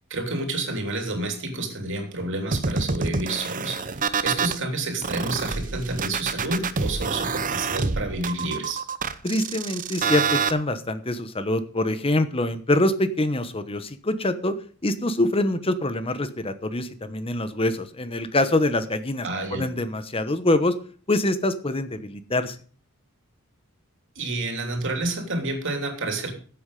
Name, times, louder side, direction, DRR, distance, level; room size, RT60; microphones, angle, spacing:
voice 1, 0.1-3.9 4.2-8.8 19.2-19.7 24.1-26.3, right 2 dB, 60° right, 4 dB, 3.1 m, -29 dB
sound 1, 2.5-4.6 5.0-10.5, right 5 dB, 40° right, 0.8 m, -27 dB
voice 2, 9.2-14.5 14.8-19.3 19.5-20.7 21.1-22.6, left 1 dB, 25° left, 11 dB, 1.1 m, -25 dB
13.5 x 8.3 x 5.3 m, 0.44 s
head